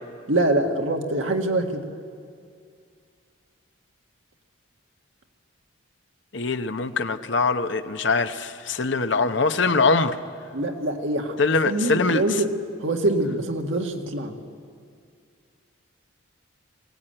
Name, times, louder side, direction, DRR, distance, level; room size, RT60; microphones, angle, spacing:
voice 1, 0.3-1.8 10.5-11.4 11.7-12.5 12.8-14.4, right 2 dB, 75° right, 3 dB, 2.0 m, -24 dB
voice 2, 6.3-10.2 11.4-12.2, left 4 dB, 60° left, 9 dB, 0.9 m, -22 dB
22.0 x 16.5 x 8.9 m, 2.3 s
head